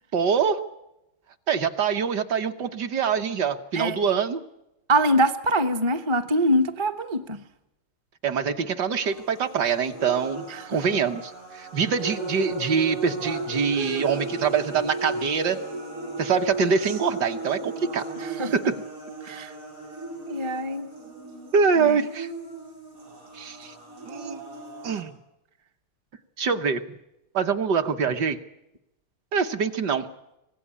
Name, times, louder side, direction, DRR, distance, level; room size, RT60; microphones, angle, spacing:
voice 1, 0.1-0.6 1.5-4.4 8.2-15.6 16.2-18.0 18.5-18.7 21.5-22.3 23.3-23.7 24.1-24.4 24.8-25.1 26.4-26.8 27.3-28.4 29.3-30.0, right 6 dB, 55° right, 7 dB, 1.5 m, -24 dB
voice 2, 4.9-7.4 10.5-10.7 18.2-18.5 19.2-19.5 20.3-20.9 21.8-22.1, right 1 dB, 25° right, 5 dB, 0.6 m, -24 dB
sound 1, 9.0-25.0, right 2 dB, 80° right, 6.2 m, -36 dB
25.0 x 16.5 x 10.0 m, 0.90 s
omnidirectional pair, 2.4 m